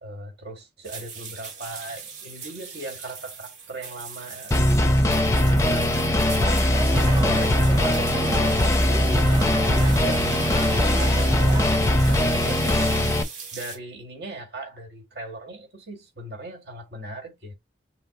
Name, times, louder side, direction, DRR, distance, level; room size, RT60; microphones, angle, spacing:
voice 1, 0.0-5.0 5.4-6.2 6.9-10.5 10.9-11.7 12.1-12.9 13.5-17.5, right 1 dB, 65° right, 2.0 m, -39 dB
sound 1, 0.8-13.8, right 5 dB, 45° right, 1.5 m, -39 dB
sound 2, 4.5-13.2, left 1 dB, 15° left, 0.6 m, -20 dB
sound 3, 6.4-11.8, right 2 dB, 20° right, 0.5 m, -33 dB
5.7 x 2.0 x 4.1 m
head